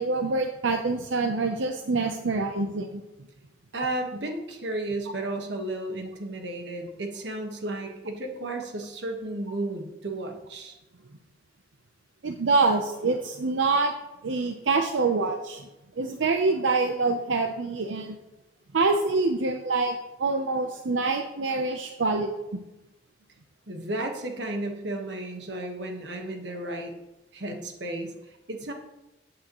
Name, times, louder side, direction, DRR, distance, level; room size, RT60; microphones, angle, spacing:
voice 1, 0.0-3.0 12.2-13.9 14.2-15.6 16.0-18.2 18.7-22.6, right 3 dB, 90° right, 4 dB, 0.7 m, -26 dB
voice 2, 3.7-10.8 23.7-26.9 27.3-28.1 28.5-28.7, right 1 dB, 70° right, 3 dB, 1.4 m, -33 dB
14.0 x 8.4 x 3.0 m, 0.99 s
head